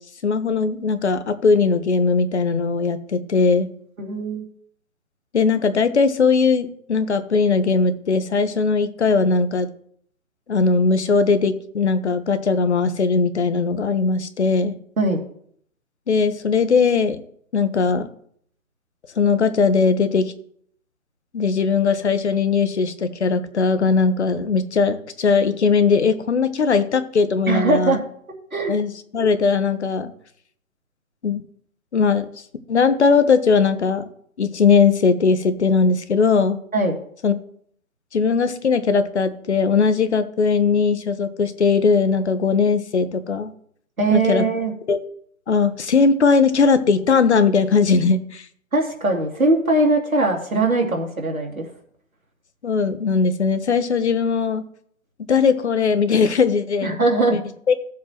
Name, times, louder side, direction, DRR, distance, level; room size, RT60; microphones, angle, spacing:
voice 1, 0.2-3.7 5.3-9.7 10.5-14.8 16.1-17.2 17.5-18.1 19.2-20.3 21.3-28.0 28.7-30.1 31.2-31.4 31.9-32.3 32.7-34.1 34.4-36.6 37.2-37.3 38.1-43.5 44.1-44.4 44.9-45.0 45.5-48.5 52.6-54.6 55.3-57.0 57.3-57.4 57.7-57.8, left 5 dB, 50° left, 11 dB, 1.1 m, -19 dB
voice 2, 4.0-4.4 15.0-15.2 27.5-28.0 28.5-28.7 36.7-37.0 44.0-44.7 48.7-51.7 56.8-57.4, right 2 dB, 80° right, 0 dB, 2.7 m, -20 dB
14.5 x 7.4 x 3.0 m, 0.65 s
figure-of-eight pair, 145°, 42 cm